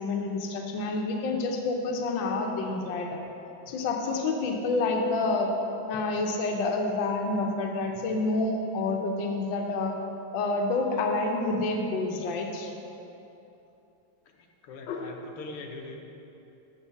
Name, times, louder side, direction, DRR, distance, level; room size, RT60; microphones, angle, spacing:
voice 1, 0.0-3.2 3.7-5.5 5.9-9.9 10.3-12.7 14.9-15.0, left 3 dB, 65° left, 2 dB, 1.5 m, -28 dB
voice 2, 14.3-16.0, left 3 dB, 85° left, 2 dB, 1.7 m, -42 dB
7.3 x 6.0 x 6.9 m, 2.9 s
omnidirectional pair, 2.4 m